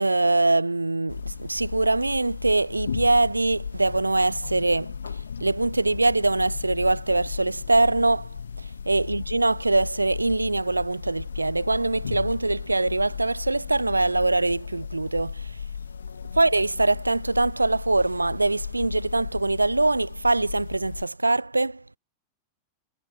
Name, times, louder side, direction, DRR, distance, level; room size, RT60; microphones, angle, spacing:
voice 1, 0.0-5.0 5.4-15.5 16.3-21.8, right 2 dB, 85° right, 0.6 m, -23 dB
sound 1, 1.1-21.1, left 6 dB, 70° left, 1.0 m, -35 dB
figure-of-eight pair, 90°, 0 cm